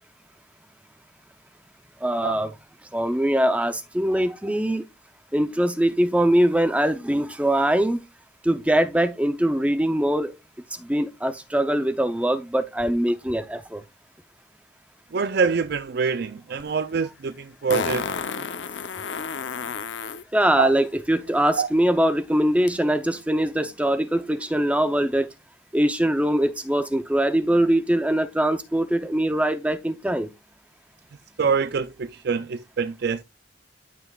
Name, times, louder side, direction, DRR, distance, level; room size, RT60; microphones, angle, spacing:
voice 1, 2.0-2.5 2.9-4.8 5.3-8.0 8.4-10.3 10.9-13.8 20.3-25.3 25.7-30.3, right 1 dB, 5° right, 0.6 m, -22 dB
voice 2, 15.1-18.4 20.6-20.7 21.6-21.7 31.4-33.2, right 5 dB, 55° right, 0.4 m, -25 dB
Fart, 16.6-16.7 17.7-20.2 22.7-22.8, left 5 dB, 80° left, 0.7 m, -30 dB
12.5 x 5.9 x 2.4 m
head